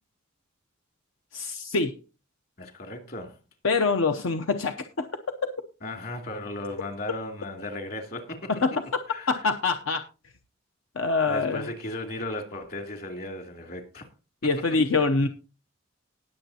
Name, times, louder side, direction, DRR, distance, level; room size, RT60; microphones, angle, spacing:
voice 1, 1.3-2.0 3.6-5.5 8.6-8.7 9.3-10.0 11.0-11.7 14.4-15.3, left 4 dB, 80° left, 0.7 m, -25 dB
voice 2, 2.6-3.4 5.8-8.5 9.1-9.3 11.3-14.1, left 1 dB, 50° left, 2.7 m, -36 dB
19.5 x 7.0 x 2.8 m
head